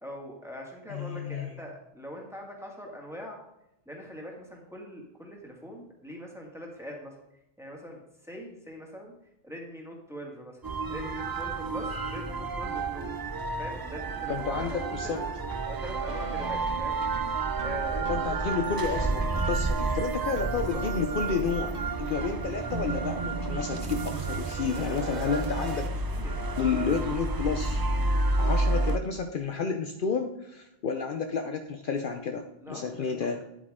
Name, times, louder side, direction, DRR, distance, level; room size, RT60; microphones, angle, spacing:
voice 1, 0.0-3.4 3.9-7.2 7.6-9.1 9.4-10.6 10.9-13.1 13.6-15.2 15.7-17.0 17.5-18.4 20.7-20.8 24.7-25.5 26.1-26.3 32.6-33.1, equal, 5° right, -1 dB, 1.9 m, -42 dB
voice 2, 0.9-1.5 14.3-15.2 18.1-25.9 26.6-27.8 28.4-33.4, left 5 dB, 60° left, 6 dB, 0.8 m, -31 dB
sound 1, 10.6-29.0, right 3 dB, 30° right, 0.4 m, -30 dB
sound 2, 16.1-25.9, right 4 dB, 50° right, 0.8 m, -41 dB
10.0 x 8.2 x 3.6 m, 0.86 s
omnidirectional pair, 1.0 m